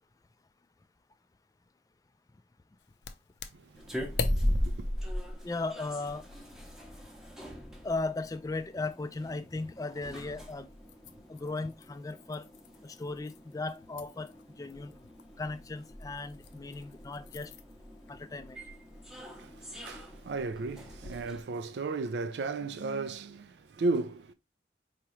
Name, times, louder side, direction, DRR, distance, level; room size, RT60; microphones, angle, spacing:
sound 1, 2.8-21.3, left 5 dB, 75° left, 0.5 m, -47 dB
sound 2, 3.7-21.4, equal, 5° right, 0.7 m, -39 dB
voice 1, 4.3-4.9 19.2-24.3, right 3 dB, 75° right, 0.4 m, -35 dB
voice 2, 5.4-6.2 7.8-10.7 11.3-12.4 12.8-14.3 14.6-14.9 15.4-17.5 18.1-18.6, left 3 dB, 20° left, 0.3 m, -36 dB
4.8 x 2.9 x 3.0 m
head